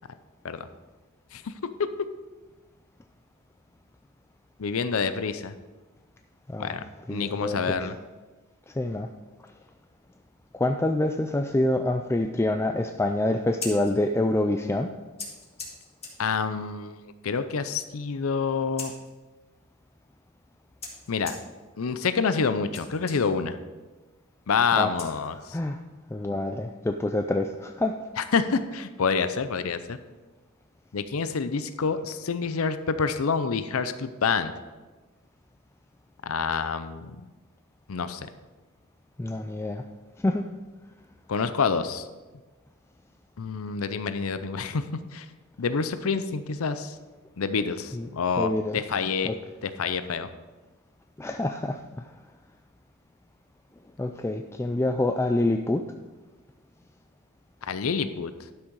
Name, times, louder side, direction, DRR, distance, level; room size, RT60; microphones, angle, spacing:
voice 1, 4.6-5.5 6.6-6.8 7.1-7.9 16.2-17.0 17.2-18.9 21.1-21.4 21.8-23.6 24.5-25.6 28.2-30.0 30.9-34.5 36.2-37.2 37.9-38.3 41.3-42.1 43.4-45.3 45.6-47.0 47.4-49.3 49.6-50.3 57.7-58.3, left 5 dB, 75° left, 11 dB, 0.6 m, -27 dB
voice 2, 7.1-7.9 8.7-9.1 10.5-14.9 24.8-24.9 25.5-25.8 26.1-28.0 39.2-39.8 40.2-40.5 47.9-48.1 48.4-48.8 49.3-49.4 51.2-52.1 54.0-55.8, left 1 dB, 10° left, 5 dB, 0.3 m, -26 dB
Scissors, 13.4-25.7, left 3 dB, 30° left, 2.1 m, -45 dB
12.0 x 6.3 x 4.7 m, 1.3 s
head